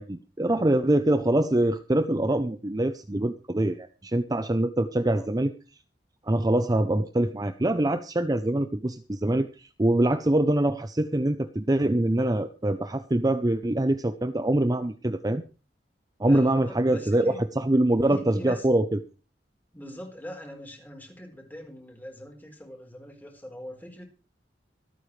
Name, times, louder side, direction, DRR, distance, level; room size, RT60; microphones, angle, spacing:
voice 1, 0.0-5.5 6.3-15.4 16.2-18.9, right 1 dB, 20° right, 9 dB, 0.7 m, -24 dB
voice 2, 16.2-17.4 18.0-18.7 19.7-24.0, equal, 10° left, 2 dB, 4.3 m, -42 dB
25.5 x 9.4 x 3.3 m, 0.34 s
head